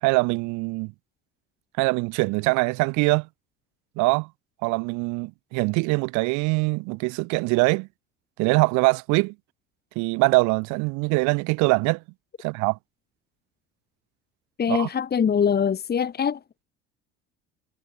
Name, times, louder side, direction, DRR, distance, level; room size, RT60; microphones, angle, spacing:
voice 1, 0.0-0.9 1.8-3.3 4.0-4.3 4.6-7.9 8.4-9.3 10.0-12.0 12.4-12.8 14.7-14.9, right 28 dB, 70° right, 2.4 m, -23 dB
voice 2, 14.6-16.6, left 7 dB, 30° left, 1.7 m, -23 dB
hypercardioid pair, 70°, 31 cm